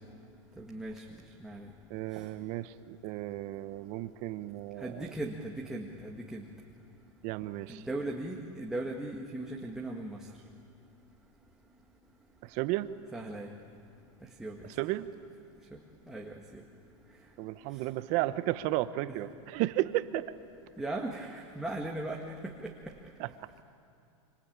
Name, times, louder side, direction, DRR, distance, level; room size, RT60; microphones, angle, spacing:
voice 1, 0.6-1.0 1.4-1.7 4.8-6.5 7.7-10.2 13.1-13.5 14.4-14.6 15.7-15.8 16.1-16.6 19.1-19.2 20.8-22.7, right 2 dB, 5° right, -1 dB, 1.8 m, -38 dB
voice 2, 1.9-5.0 7.2-7.8 12.5-12.9 14.8-15.1 17.4-20.2 23.2-23.3, right 16 dB, 45° right, 12 dB, 1.1 m, -33 dB
26.0 x 26.0 x 8.8 m, 2.4 s
supercardioid pair, 135°, 17 cm